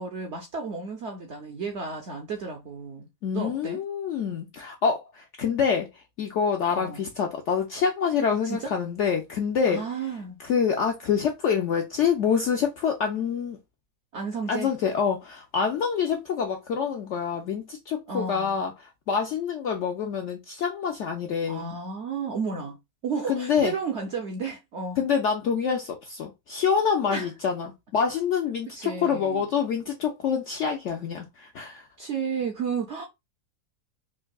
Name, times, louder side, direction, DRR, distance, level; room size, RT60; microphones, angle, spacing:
voice 1, 0.0-3.1 3.3-3.8 6.7-7.0 8.5-8.7 9.7-10.4 14.1-14.7 18.1-18.6 21.5-22.8 23.0-25.0 27.1-27.3 28.8-29.4 32.0-33.1, right 5 dB, 65° right, 0.7 m, -32 dB
voice 2, 3.2-9.8 10.4-13.6 14.5-21.7 23.3-23.8 25.0-31.9, left 6 dB, 70° left, 0.7 m, -26 dB
4.4 x 2.6 x 2.3 m
omnidirectional pair, 1.8 m